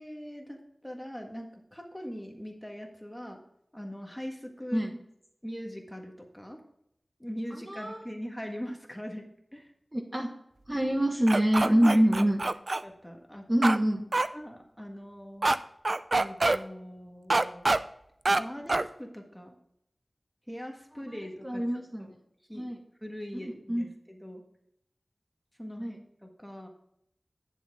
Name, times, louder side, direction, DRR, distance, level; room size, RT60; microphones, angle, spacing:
voice 1, 0.0-3.4 3.7-4.9 5.4-6.6 7.2-9.7 11.7-12.2 12.8-13.5 14.3-15.6 16.1-17.7 18.3-19.6 20.5-21.6 22.0-22.1 22.5-22.7 23.0-24.4 25.6-26.7, equal, 5° left, 2 dB, 1.6 m, -41 dB
voice 2, 7.5-8.0 9.9-10.3 10.7-12.4 13.5-14.0 20.9-22.1 22.5-22.8 23.3-23.9 25.8-26.0, equal, 20° right, 2 dB, 1.4 m, -26 dB
sound 1, 11.3-12.8 13.6-13.8 14.1-14.3 15.4-15.6 15.8-16.6 17.3-17.8 18.2-18.4 18.7-18.9, right 2 dB, 55° right, 0.4 m, -25 dB
10.0 x 7.2 x 3.6 m, 0.75 s
wide cardioid pair, 65°, 0 cm